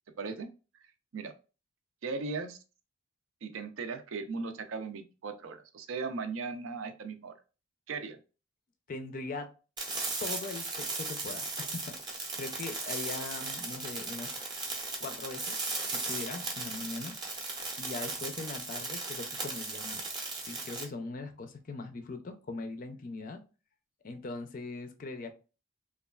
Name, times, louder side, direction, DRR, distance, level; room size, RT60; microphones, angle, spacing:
voice 1, 0.2-0.5 1.1-1.3 2.0-2.6 3.4-7.3 7.9-8.2, right 4 dB, 75° right, 8 dB, 0.4 m, -37 dB
voice 2, 8.9-9.5 10.2-14.3 15.0-15.6 15.9-17.1 17.8-20.1 20.4-23.4 24.0-25.3, left 3 dB, 40° left, 8 dB, 0.4 m, -41 dB
sound 1, 9.8-20.8, right 3 dB, 20° right, 0.6 m, -37 dB
3.1 x 2.3 x 2.2 m, 0.33 s
head